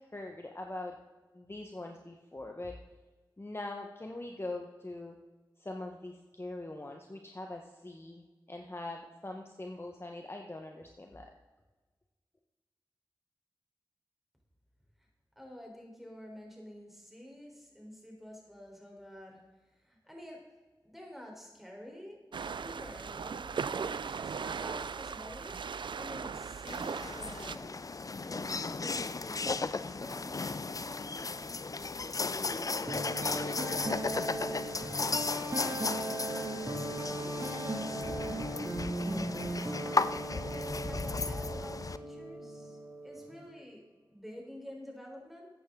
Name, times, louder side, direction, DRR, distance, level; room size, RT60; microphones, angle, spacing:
voice 1, 0.1-0.9 1.3-2.7 3.4-5.1 5.6-11.3, left 2 dB, 30° left, 2 dB, 1.2 m, -42 dB
voice 2, 15.4-19.4 19.7-20.4 20.8-22.2 22.6-27.7 28.2-29.5 30.0-31.3 32.3-38.1 38.8-43.8 44.1-45.5, equal, 5° right, 0 dB, 4.0 m, -49 dB
sound 1, 22.3-27.6, right 6 dB, 80° right, 0.4 m, -38 dB
sound 2, 26.7-42.0, left 4 dB, 45° left, 0.5 m, -35 dB
sound 3, 32.9-43.5, right 1 dB, 40° right, 2.4 m, -38 dB
13.5 x 8.9 x 3.8 m, 1.3 s
cardioid pair, 45°, 8 cm